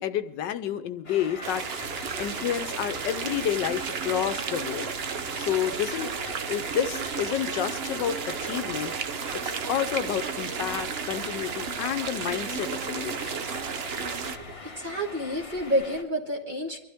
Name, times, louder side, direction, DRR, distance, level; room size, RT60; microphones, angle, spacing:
voice 1, 0.0-1.6 2.2-4.9 5.4-6.1 6.5-8.9 9.4-13.3, left 10 dB, 75° left, 10 dB, 1.3 m, -30 dB
sound 1, 1.0-16.0, left 3 dB, 35° left, 1.4 m, -43 dB
sound 2, 1.4-14.4, right 6 dB, 65° right, 0.6 m, -33 dB
Mechanical fan, 1.8-14.6, left 5 dB, 55° left, 1.4 m, -49 dB
voice 2, 14.1-16.8, equal, 30° right, 1 dB, 1.4 m, -30 dB
24.5 x 12.5 x 3.5 m, 0.89 s
omnidirectional pair, 2.0 m